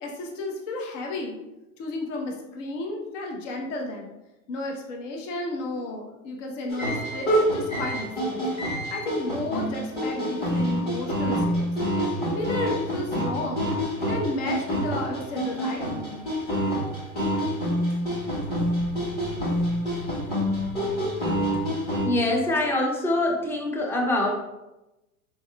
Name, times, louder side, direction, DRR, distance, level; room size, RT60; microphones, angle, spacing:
voice 1, 0.0-1.4 1.8-4.1 4.5-11.7 12.3-13.7 14.0-16.3, left 2 dB, 55° left, 1 dB, 0.9 m, -33 dB
sound 1, 6.7-22.1, equal, 20° left, 1.4 m, -27 dB
voice 2, 22.0-24.3, left 2 dB, 5° left, 0 dB, 0.4 m, -24 dB
4.6 x 3.4 x 2.2 m, 0.97 s
hypercardioid pair, 105°, 45 cm